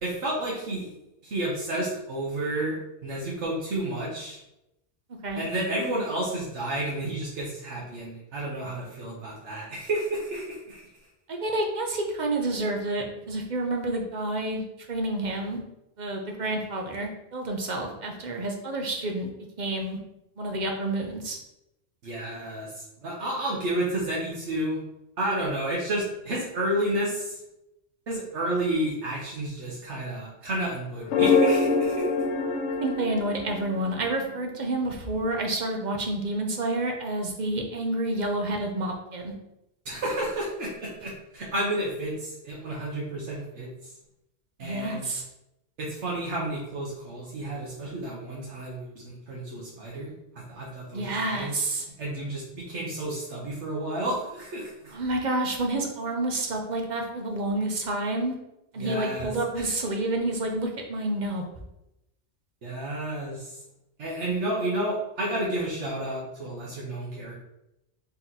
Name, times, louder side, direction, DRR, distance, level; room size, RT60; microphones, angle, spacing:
voice 1, 0.0-0.9 1.2-2.8 3.0-4.4 5.4-10.8 22.0-24.8 25.2-27.4 28.1-32.0 39.8-43.9 44.6-45.1 45.8-50.1 50.5-51.6 52.0-54.9 58.8-59.7 62.6-63.6 64.0-67.3, right 1 dB, 90° right, -5 dB, 1.3 m, -31 dB
voice 2, 11.3-15.6 16.0-19.3 19.6-20.0 20.4-21.4 32.8-39.3 44.6-45.2 50.9-51.8 54.9-58.3 58.7-61.4, right 2 dB, 45° right, 2 dB, 0.7 m, -29 dB
sound 1, 31.0-34.4, left 4 dB, 85° left, 0.9 m, -24 dB
4.1 x 2.9 x 3.9 m, 0.87 s
omnidirectional pair, 1.2 m